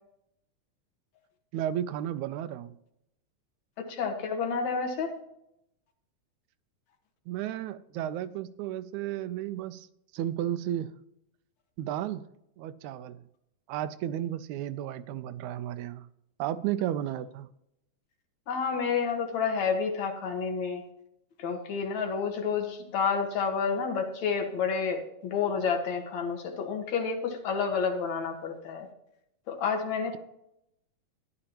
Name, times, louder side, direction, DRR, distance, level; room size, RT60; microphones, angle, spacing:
voice 1, 1.5-2.7 7.3-9.9 10.1-10.9 11.8-12.3 12.6-13.2 13.7-16.1 16.4-17.5, right 11 dB, 85° right, 14 dB, 1.9 m, -33 dB
voice 2, 3.8-5.1 18.5-20.8 21.4-28.9 29.5-30.2, left 5 dB, 70° left, 4 dB, 2.7 m, -30 dB
13.5 x 10.5 x 2.9 m, 0.79 s
omnidirectional pair, 3.4 m